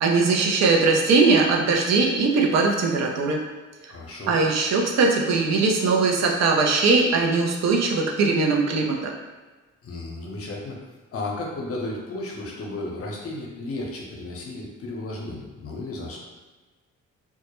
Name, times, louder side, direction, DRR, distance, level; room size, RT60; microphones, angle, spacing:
voice 1, 0.0-3.4 4.3-9.1, right 4 dB, 60° right, 0 dB, 0.5 m, -20 dB
voice 2, 3.9-4.4 9.8-10.8 11.1-16.2, left 2 dB, 50° left, -1 dB, 0.6 m, -33 dB
2.2 x 2.0 x 2.9 m, 1.3 s
cardioid pair, 90°, 30 cm